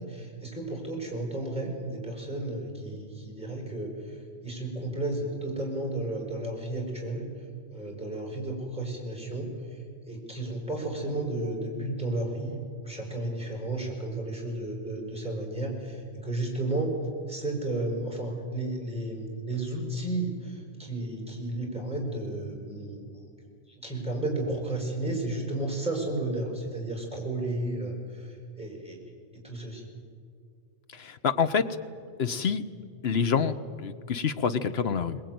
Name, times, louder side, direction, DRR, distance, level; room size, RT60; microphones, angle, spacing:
voice 1, 0.0-7.2 7.7-12.6 12.8-17.0 17.3-23.0 23.7-29.0 29.3-29.8, right 2 dB, 5° right, -1 dB, 5.7 m, -33 dB
voice 2, 30.9-31.7 32.2-32.6 33.0-35.2, left 6 dB, 70° left, 11 dB, 1.2 m, -27 dB
22.0 x 20.0 x 9.4 m, 2.2 s
omnidirectional pair, 1.1 m